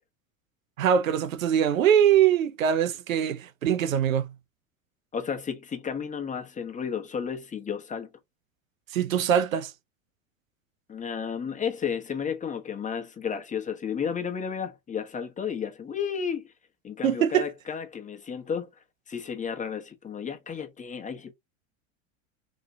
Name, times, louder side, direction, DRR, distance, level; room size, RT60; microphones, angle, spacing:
voice 1, 0.8-4.3 8.9-9.7 17.0-17.5, right 9 dB, 90° right, 0.7 m, -23 dB
voice 2, 5.1-8.1 10.9-16.5 16.8-18.7 19.1-21.3, left 7 dB, 20° left, 1.0 m, -32 dB
3.7 x 3.1 x 2.7 m
hypercardioid pair, 95°, 39 cm